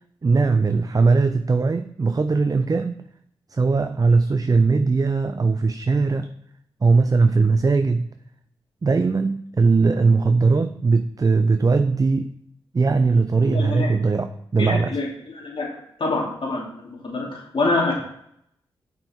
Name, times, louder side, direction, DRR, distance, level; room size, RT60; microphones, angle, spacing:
voice 1, 0.2-3.0 3.5-6.3 6.8-8.1 8.8-12.3 12.7-15.0, right 4 dB, 35° right, 8 dB, 0.6 m, -19 dB
voice 2, 13.5-13.9 14.6-15.1 15.3-15.7 16.0-17.9, left 2 dB, 60° left, -3 dB, 2.9 m, -25 dB
7.8 x 5.4 x 4.5 m, 0.71 s
supercardioid pair, 40°, 10 cm